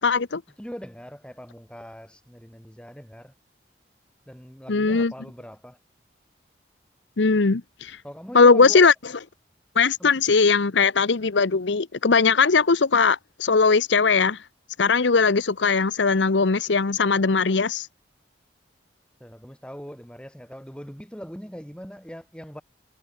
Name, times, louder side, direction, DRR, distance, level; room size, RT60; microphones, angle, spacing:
voice 1, 0.0-0.4 4.7-5.1 7.2-8.0 8.3-8.9 9.8-14.4 14.8-17.9, left 4 dB, 85° left, 0.9 m, -19 dB
voice 2, 0.6-3.3 4.3-5.8 8.0-8.9 10.0-10.2 19.2-22.6, equal, 5° left, 3.3 m, -41 dB
head